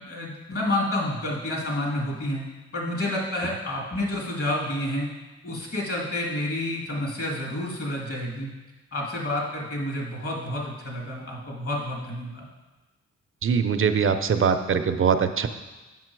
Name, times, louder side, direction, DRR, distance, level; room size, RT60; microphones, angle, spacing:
voice 1, 0.1-2.4 2.7-5.1 5.4-8.5 8.9-12.5, left 1 dB, 50° left, -3 dB, 2.3 m, -29 dB
voice 2, 13.4-15.5, right 6 dB, 45° right, 9 dB, 0.5 m, -22 dB
7.5 x 5.6 x 4.6 m, 1.2 s
cardioid pair, 85°, 29 cm